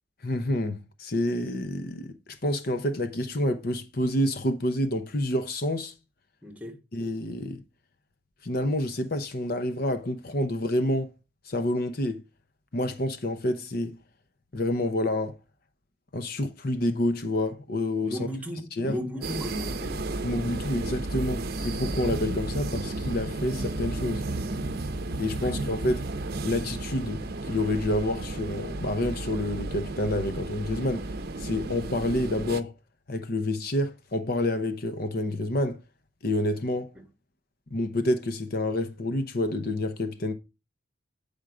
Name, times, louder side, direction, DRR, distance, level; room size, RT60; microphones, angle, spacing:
voice 1, 0.2-2.1 2.4-5.9 6.9-7.6 8.4-11.1 11.5-12.2 12.7-14.0 14.5-15.4 16.1-18.3 18.8-18.9 20.2-24.2 25.2-26.0 26.4-31.1 31.4-32.7 33.1-35.8 36.2-36.9 37.7-40.3, left 1 dB, 50° left, 0.8 m, -28 dB
voice 2, 6.4-6.8 18.0-20.1 25.4-25.6, equal, 5° right, 1.6 m, -35 dB
sound 1, 19.2-32.6, right 2 dB, 50° right, 0.7 m, -33 dB
8.9 x 5.2 x 4.8 m
head